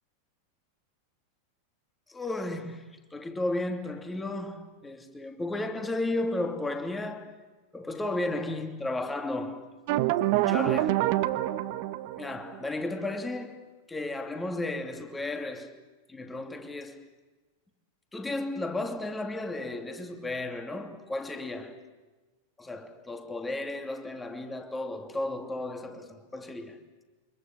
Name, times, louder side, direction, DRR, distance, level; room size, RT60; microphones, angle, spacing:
voice 1, 2.1-2.8 3.1-7.4 7.7-9.8 10.3-11.1 12.2-13.6 13.9-15.8 16.1-17.1 18.1-21.8 22.6-26.8, left 2 dB, 10° left, 2.8 m, -34 dB
sound 1, 9.9-12.6, right 15 dB, 45° right, 1.4 m, -26 dB
29.0 x 25.5 x 7.8 m
figure-of-eight pair, 90°, 0 cm